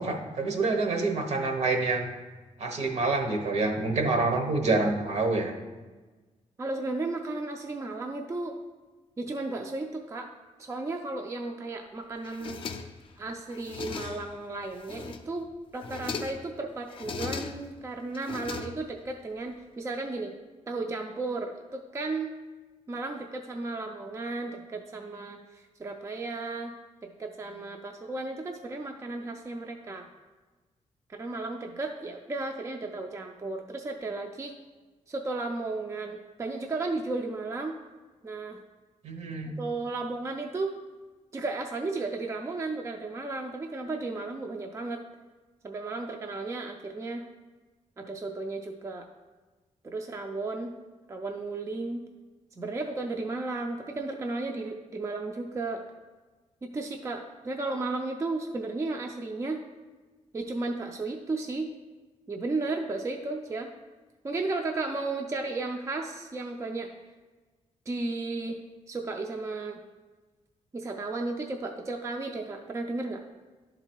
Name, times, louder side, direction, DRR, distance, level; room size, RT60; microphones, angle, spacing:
voice 1, 0.0-2.1 2.6-5.5 39.0-39.5, right 3 dB, 65° right, 4 dB, 1.0 m, -27 dB
voice 2, 6.6-8.6 9.2-10.3 10.6-12.8 13.2-20.3 20.7-22.3 22.9-26.7 27.0-30.1 31.1-34.5 35.1-37.8 38.2-38.6 39.6-40.7 41.3-45.0 45.6-47.3 48.0-49.1 49.8-50.7 51.1-52.0 52.6-55.8 56.6-59.6 60.3-61.7 62.3-63.7 64.2-66.9 67.9-68.6 68.9-69.8 70.7-73.2, right 3 dB, 25° right, 3 dB, 0.4 m, -34 dB
sound 1, 12.2-13.1 13.5-14.4 14.8-15.4 15.7-16.5 16.9-17.8 18.1-19.1, left 5 dB, 45° left, 0.5 m, -38 dB
10.5 x 3.9 x 4.5 m, 1.3 s
wide cardioid pair, 165°, 12 cm